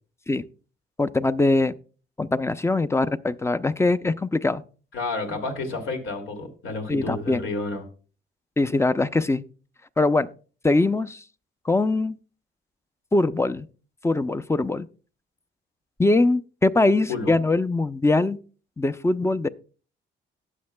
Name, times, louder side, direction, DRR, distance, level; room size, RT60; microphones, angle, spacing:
voice 1, 1.0-1.7 2.2-4.6 6.9-7.4 8.6-9.4 10.0-10.3 10.6-11.2 11.7-12.2 13.1-13.7 14.0-14.9 16.0-18.4 18.8-19.5, left 2 dB, 15° left, 0.5 m, -22 dB
voice 2, 4.9-7.8 17.1-17.3, left 3 dB, 85° left, 2.5 m, -30 dB
18.0 x 6.4 x 2.2 m
cardioid pair, 90°, 20 cm